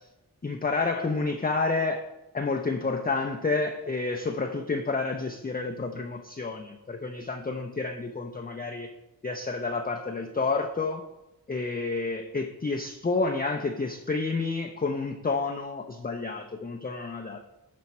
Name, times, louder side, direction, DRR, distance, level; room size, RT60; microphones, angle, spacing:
voice 1, 0.4-8.9 9.2-11.0 11.5-17.6, left 3 dB, 25° left, 3 dB, 0.6 m, -30 dB
9.5 x 4.4 x 4.2 m, 0.98 s
cardioid pair, 45°, 39 cm